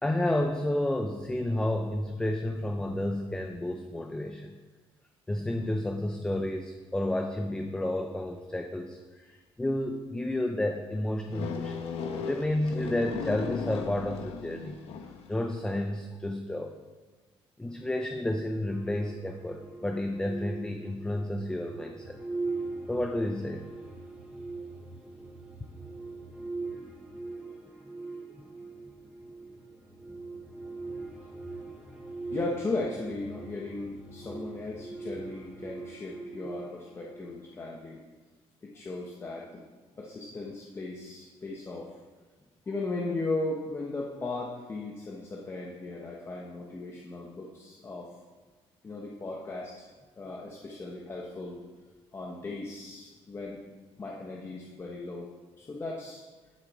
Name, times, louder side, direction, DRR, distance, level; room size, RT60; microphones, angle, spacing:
voice 1, 0.0-4.6 5.3-9.0 9.6-11.8 12.2-14.8 15.3-16.7 17.6-22.2 22.9-23.7 28.3-28.5, left 1 dB, 10° left, 4 dB, 0.6 m, -31 dB
sound 1, 11.3-15.4, left 6 dB, 70° left, 1.2 m, -36 dB
sound 2, 18.7-37.6, right 3 dB, 10° right, 2.5 m, -41 dB
voice 2, 32.3-38.0 38.6-39.6 40.0-42.0 42.7-48.1 48.8-49.9 50.2-51.6 52.1-53.6 54.0-55.3 55.6-56.2, left 2 dB, 25° left, -2 dB, 1.2 m, -37 dB
11.5 x 8.6 x 4.9 m, 1.3 s
cardioid pair, 145°, 11 cm